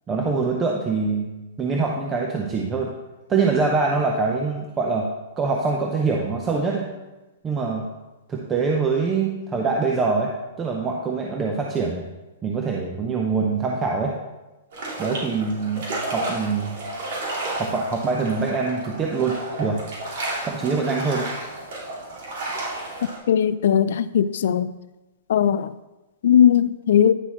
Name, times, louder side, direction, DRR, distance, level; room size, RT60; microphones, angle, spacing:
voice 1, 0.1-1.3 1.6-2.9 3.3-5.1 5.4-6.9 7.4-7.8 8.3-10.3 10.6-12.1 12.4-14.1 15.0-16.8 17.6-19.8 20.4-21.3, right 4 dB, 20° right, 0 dB, 0.7 m, -24 dB
sound 1, 14.7-23.2, right 2 dB, 60° right, 2.7 m, -32 dB
voice 2, 23.3-24.7 25.3-25.7 26.2-27.1, left 9 dB, 70° left, 15 dB, 0.3 m, -18 dB
9.9 x 6.1 x 3.0 m, 1.1 s
hypercardioid pair, 150°, 0 cm